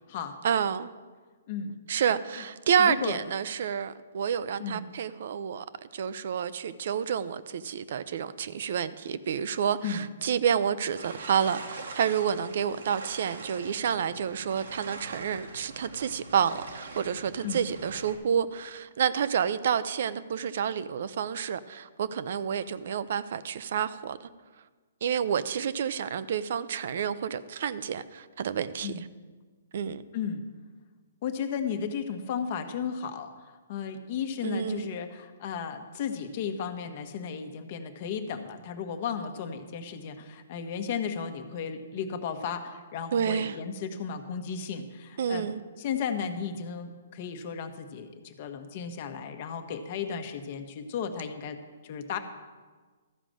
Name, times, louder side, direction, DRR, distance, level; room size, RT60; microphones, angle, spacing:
voice 1, 0.4-0.9 1.9-5.6 5.9-24.2 25.0-28.9 29.7-30.0 34.4-34.9 43.1-43.5 45.2-45.6, right 8 dB, 60° right, 0.5 m, -29 dB
voice 2, 2.8-3.2 4.6-4.9 9.8-10.1 17.4-17.6 28.8-29.0 30.1-30.4 31.2-45.5 45.8-51.6 51.8-52.2, left 7 dB, 45° left, 1.1 m, -34 dB
sound 1, 11.0-18.2, right 3 dB, 80° right, 1.5 m, -43 dB
13.0 x 5.0 x 7.6 m
hypercardioid pair, 145°, 0 cm